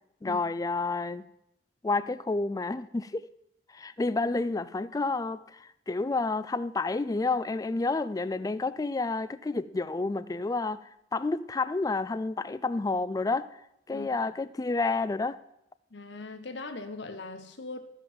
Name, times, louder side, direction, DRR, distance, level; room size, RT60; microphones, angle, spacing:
voice 1, 0.2-1.3 1.8-3.3 3.7-13.6 13.9-15.4, left 3 dB, 20° left, 0.3 m, -30 dB
voice 2, 15.9-17.8, left 3 dB, 75° left, 1.1 m, -40 dB
13.0 x 5.4 x 7.4 m
head